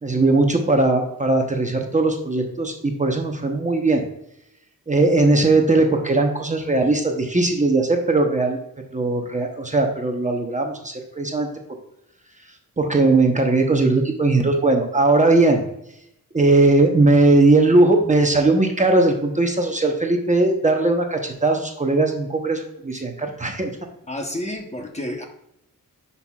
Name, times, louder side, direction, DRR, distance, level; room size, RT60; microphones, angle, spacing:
voice 1, 0.0-4.0 4.9-8.6 8.9-11.8 12.8-15.6 16.3-23.7, right 2 dB, 20° right, 3 dB, 0.8 m, -19 dB
voice 2, 24.1-25.2, left 1 dB, 20° left, 3 dB, 0.9 m, -30 dB
10.5 x 5.6 x 2.3 m, 0.81 s
wide cardioid pair, 140°, 35 cm